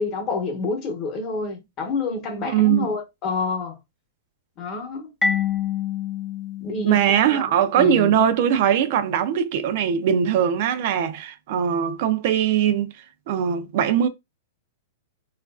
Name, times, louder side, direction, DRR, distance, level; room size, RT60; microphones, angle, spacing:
voice 1, 0.0-3.8 4.6-5.1 6.6-7.0 7.3-7.4 7.7-8.1, left 4 dB, 30° left, 0.9 m, -28 dB
voice 2, 2.5-2.9 6.8-12.9 13.3-14.1, right 9 dB, 55° right, 0.4 m, -21 dB
Marimba xylophone, 5.2-7.8, left 6 dB, 5° left, 0.5 m, -27 dB
3.0 x 2.4 x 2.3 m
hypercardioid pair, 145°, 0 cm